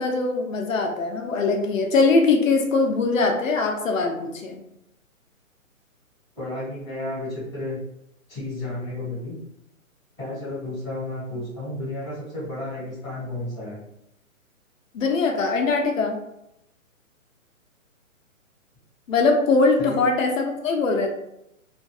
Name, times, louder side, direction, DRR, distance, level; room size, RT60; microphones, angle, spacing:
voice 1, 0.0-4.6 14.9-16.1 19.1-21.1, left 3 dB, 65° left, 2 dB, 0.6 m, -21 dB
voice 2, 6.3-7.8 8.3-9.4 10.2-13.8 19.8-20.0, left 2 dB, 5° right, -27 dB, 0.6 m, -32 dB
2.5 x 2.4 x 2.3 m, 0.82 s
hypercardioid pair, 170°, 42 cm